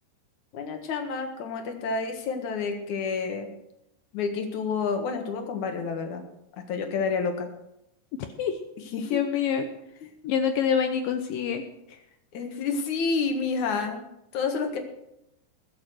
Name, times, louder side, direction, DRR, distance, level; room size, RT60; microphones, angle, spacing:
voice 1, 0.5-3.5 4.1-6.2 6.7-7.5 8.9-9.2 12.3-14.0 14.3-14.8, left 5 dB, 60° left, 5 dB, 2.2 m, -29 dB
voice 2, 9.1-9.7 10.2-11.6 11.9-12.0, left 7 dB, 80° left, 7 dB, 2.0 m, -26 dB
20.5 x 7.4 x 6.3 m, 0.86 s
omnidirectional pair, 5.0 m